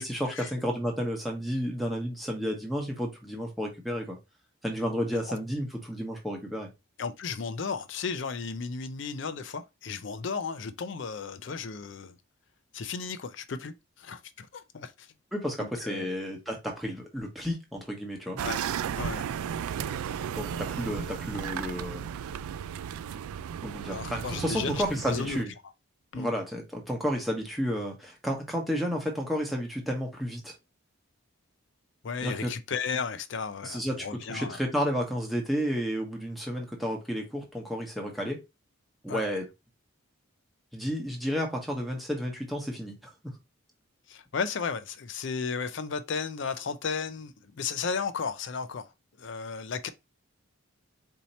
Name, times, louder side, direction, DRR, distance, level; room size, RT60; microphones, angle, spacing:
voice 1, 0.0-4.2 4.6-6.7 15.3-18.4 20.4-22.0 23.6-25.5 26.1-30.5 32.2-32.5 33.6-38.4 39.0-39.5 40.7-42.9 43.2-43.3, equal, ahead, 1.0 m, -31 dB
voice 2, 7.0-12.2 12.7-15.1 15.6-16.1 18.4-18.6 19.0-19.3 23.9-25.4 26.1-26.3 32.0-34.6 39.1-39.3 44.1-48.9 49.2-49.9, left 5 dB, 55° left, 0.4 m, -34 dB
sound 1, 18.4-25.4, right 8 dB, 85° right, 0.3 m, -34 dB
4.4 x 2.8 x 4.1 m
head